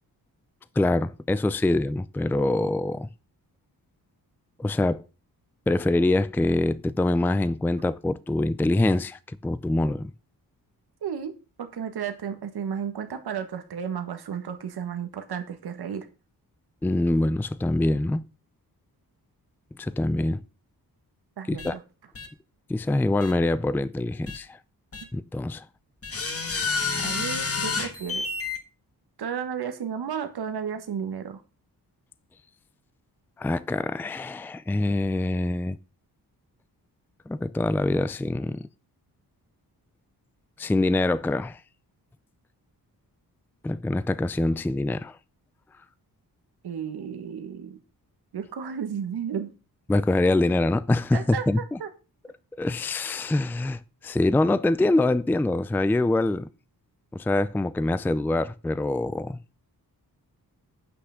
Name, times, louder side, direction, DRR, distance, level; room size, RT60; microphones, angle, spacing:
voice 1, 0.8-3.1 4.6-5.0 5.7-10.1 16.8-18.2 19.8-20.4 21.5-21.8 22.7-24.6 25.1-25.6 33.4-35.8 37.3-38.6 40.6-41.6 43.6-45.2 49.9-51.8 52.6-56.5 57.1-59.4, left 2 dB, 5° left, 0.4 m, -24 dB
voice 2, 11.0-16.1 21.4-21.8 27.0-28.3 29.2-31.4 46.6-47.8 48.3-49.5 51.1-51.9, right 7 dB, 85° right, 1.7 m, -33 dB
sound 1, 21.6-21.7 22.1-22.3 23.2-23.3 24.3-24.4 24.9-25.0 26.0-28.6, left 4 dB, 35° left, 1.7 m, -29 dB
9.8 x 5.9 x 6.4 m
wide cardioid pair, 130°, 38 cm